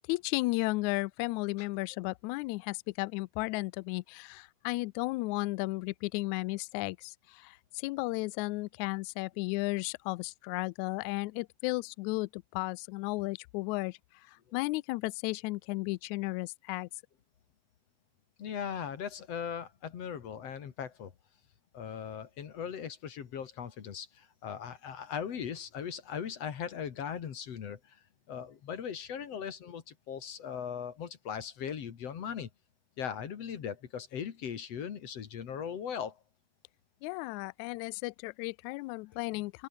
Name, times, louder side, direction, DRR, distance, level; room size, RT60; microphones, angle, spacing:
voice 1, 0.1-14.0 14.3-16.9 37.0-39.7, left 22 dB, 85° left, 1.6 m, -34 dB
voice 2, 18.4-21.1 21.7-28.0 28.3-32.5 33.0-36.2, left 8 dB, 50° left, 2.6 m, -39 dB
open air
omnidirectional pair, 3.9 m